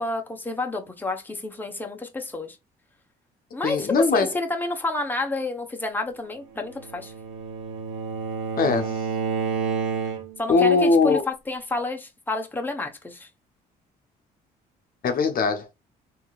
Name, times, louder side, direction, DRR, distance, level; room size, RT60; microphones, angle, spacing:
voice 1, 0.0-2.6 3.5-7.1 10.4-13.3, left 2 dB, 10° left, 0.9 m, -29 dB
voice 2, 3.6-4.3 8.6-9.0 10.5-11.2 15.0-15.7, left 4 dB, 50° left, 0.8 m, -20 dB
Bowed string instrument, 6.6-10.5, right 6 dB, 85° right, 0.9 m, -30 dB
3.6 x 2.8 x 2.3 m
supercardioid pair, 70°, 19 cm